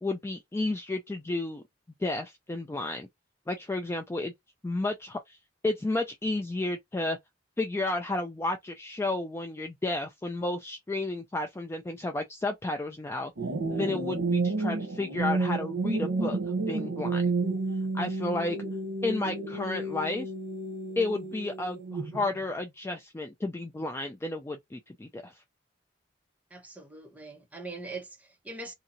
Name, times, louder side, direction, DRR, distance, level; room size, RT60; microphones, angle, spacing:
voice 1, 0.0-1.6 2.0-3.1 3.5-4.3 4.6-5.4 5.6-7.2 7.6-13.3 13.7-16.4 16.7-17.2 17.9-18.6 19.0-20.3 21.0-25.3, left 2 dB, 15° left, 0.3 m, -32 dB
sound 1, 13.4-22.3, right 3 dB, 75° right, 0.8 m, -31 dB
voice 2, 26.5-28.7, right 3 dB, 10° right, 0.8 m, -42 dB
2.8 x 2.7 x 2.5 m
head